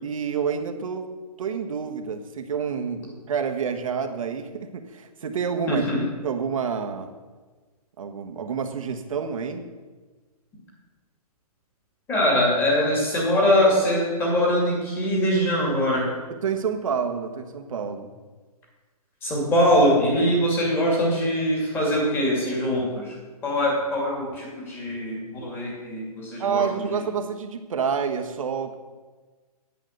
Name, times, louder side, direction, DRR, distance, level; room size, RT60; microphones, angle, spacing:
voice 1, 0.0-5.9 6.2-7.1 8.0-9.7 16.3-18.1 20.2-20.4 26.4-28.7, right 6 dB, 55° right, 5 dB, 1.3 m, -28 dB
voice 2, 5.7-6.0 12.1-16.1 19.2-23.1 23.4-26.6, equal, 10° left, -3 dB, 2.5 m, -22 dB
10.0 x 8.5 x 6.6 m, 1.3 s
hypercardioid pair, 165°, 20 cm